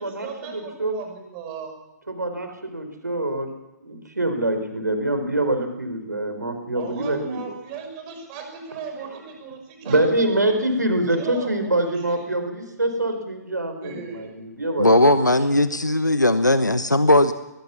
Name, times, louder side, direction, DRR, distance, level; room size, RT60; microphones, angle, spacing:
voice 1, 0.0-1.7 6.7-10.7 11.1-12.3 13.8-14.4, right 6 dB, 30° right, 4 dB, 6.0 m, -37 dB
voice 2, 0.5-1.0 2.1-3.5 3.8-7.5 9.8-15.2, right 1 dB, 75° right, 7 dB, 4.7 m, -25 dB
voice 3, 14.8-17.3, left 1 dB, 85° left, 12 dB, 1.1 m, -18 dB
21.0 x 21.0 x 7.2 m, 0.95 s
figure-of-eight pair, 125°, 10 cm